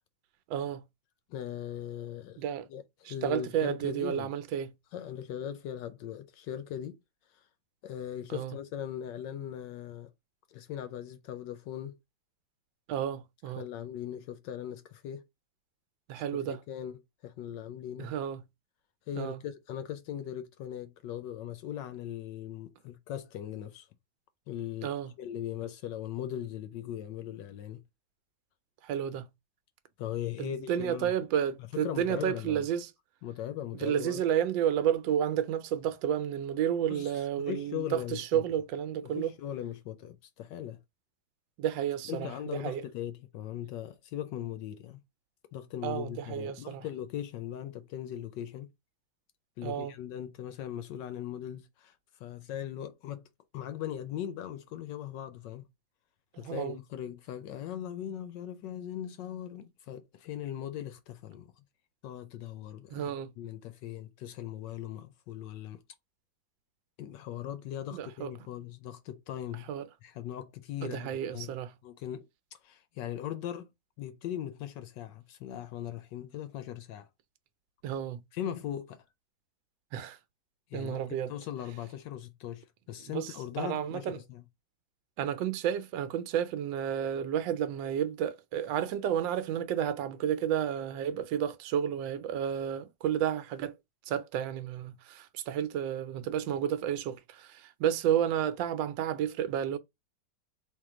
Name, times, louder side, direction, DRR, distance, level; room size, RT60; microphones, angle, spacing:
voice 1, 0.5-0.8 2.4-2.7 3.1-4.7 8.3-8.6 12.9-13.7 16.1-16.6 18.0-18.4 19.2-19.4 24.8-25.1 28.8-29.3 30.4-32.9 33.8-39.3 41.6-42.8 45.8-46.8 49.6-49.9 56.3-56.8 62.9-63.3 67.9-68.3 69.7-69.8 70.8-71.7 77.8-78.2 79.9-80.2 80.7-81.3 83.1-83.3 83.6-84.2 85.2-93.7 94.1-99.8, right 9 dB, 80° right, 1.3 m, -31 dB
voice 2, 1.3-2.4 2.7-4.3 4.9-7.0 7.3-7.4 7.8-10.1 10.5-12.0 13.5-15.2 16.1-18.1 19.1-23.9 24.5-24.9 25.2-27.8 30.0-31.1 31.7-32.7 33.2-34.2 36.9-38.4 39.0-40.8 42.0-45.0 45.5-48.7 49.6-53.3 53.5-55.7 56.4-61.6 62.0-65.8 67.0-69.7 70.0-71.5 71.8-72.3 72.6-73.7 74.0-77.1 78.3-79.0 80.7-81.0 81.3-84.4, left 10 dB, 75° left, 1.2 m, -39 dB
3.6 x 2.8 x 4.7 m
omnidirectional pair, 2.0 m